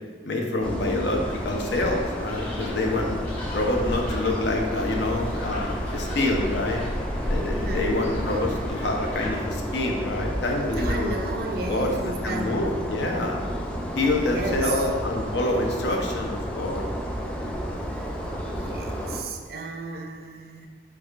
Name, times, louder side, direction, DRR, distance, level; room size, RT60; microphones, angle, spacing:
voice 1, 0.2-3.2 3.5-6.8 7.3-11.1 11.6-13.5 14.0-16.9, left 2 dB, 75° left, 1 dB, 0.7 m, -27 dB
sound 1, 0.6-19.2, equal, 5° left, 0.3 m, -32 dB
sound 2, 1.2-9.4, equal, 35° left, 1.3 m, -34 dB
voice 2, 7.5-8.2 10.8-12.9 14.2-14.9 17.9-18.2 18.5-20.7, right 2 dB, 55° right, 3 dB, 0.5 m, -34 dB
4.7 x 4.3 x 2.4 m, 1.5 s
head